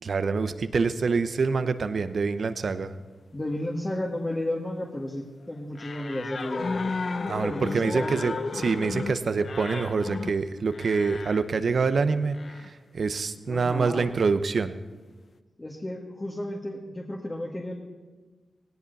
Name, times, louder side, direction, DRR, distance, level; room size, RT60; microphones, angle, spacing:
voice 1, 0.0-2.9 7.3-14.7, right 4 dB, 65° right, 11 dB, 0.9 m, -26 dB
voice 2, 3.3-6.9 7.4-8.3 13.5-14.1 15.6-17.8, left 1 dB, 25° left, -1 dB, 2.1 m, -33 dB
sound 1, 5.8-11.5 12.3-12.7, left 4 dB, 60° left, 0.7 m, -34 dB
17.5 x 17.5 x 4.2 m, 1.3 s
cardioid pair, 50°, 0 cm